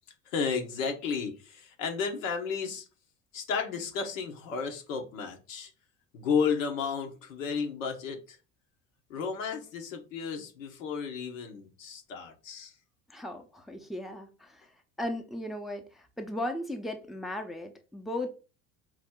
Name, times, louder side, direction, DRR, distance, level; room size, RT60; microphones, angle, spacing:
voice 1, 0.3-2.9 3.3-5.7 6.1-8.4 9.1-12.7, left 6 dB, 85° left, 1.0 m, -33 dB
voice 2, 13.1-14.7 15.0-18.3, left 1 dB, ahead, 0.6 m, -36 dB
4.8 x 2.0 x 3.7 m
hypercardioid pair, 75°, 39 cm